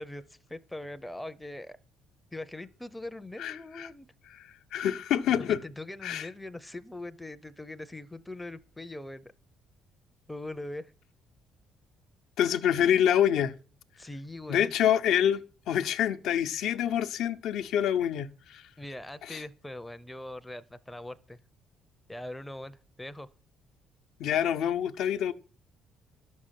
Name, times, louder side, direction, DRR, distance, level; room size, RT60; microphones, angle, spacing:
voice 1, 0.0-1.8 2.3-4.1 5.4-9.3 10.3-10.9 14.0-14.7 18.8-21.4 22.1-23.3, left 1 dB, 5° left, 0.6 m, -41 dB
voice 2, 3.4-3.9 4.3-5.6 6.0-6.3 12.4-13.5 14.5-15.4 15.7-18.6 19.2-19.4 24.2-25.3, left 10 dB, 70° left, 0.8 m, -26 dB
12.0 x 6.4 x 7.4 m
cardioid pair, 160°, 0 cm